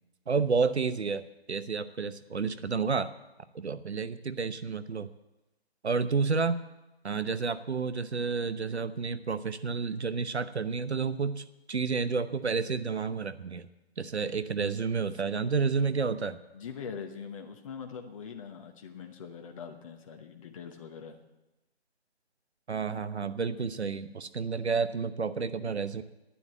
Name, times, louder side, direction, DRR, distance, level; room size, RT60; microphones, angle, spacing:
voice 1, 0.3-1.2 1.5-3.1 3.5-5.1 5.8-6.6 7.0-13.7 14.0-16.4 22.7-26.0, right 5 dB, 85° right, 12 dB, 1.0 m, -30 dB
voice 2, 16.5-21.2, left 6 dB, 30° left, 3 dB, 1.1 m, -42 dB
11.5 x 9.8 x 7.5 m, 1.0 s
figure-of-eight pair, 150°, 32 cm